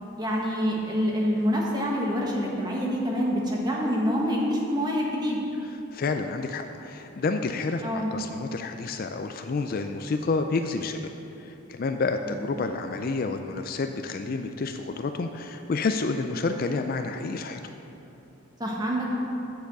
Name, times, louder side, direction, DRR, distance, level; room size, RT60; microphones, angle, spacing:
voice 1, 0.2-5.4 7.8-8.1 12.3-12.4 18.6-19.2, equal, 20° right, -3 dB, 1.4 m, -26 dB
voice 2, 5.7-11.1 11.4-17.7, left 3 dB, 45° left, 6 dB, 0.4 m, -29 dB
7.1 x 7.0 x 7.6 m, 2.8 s
head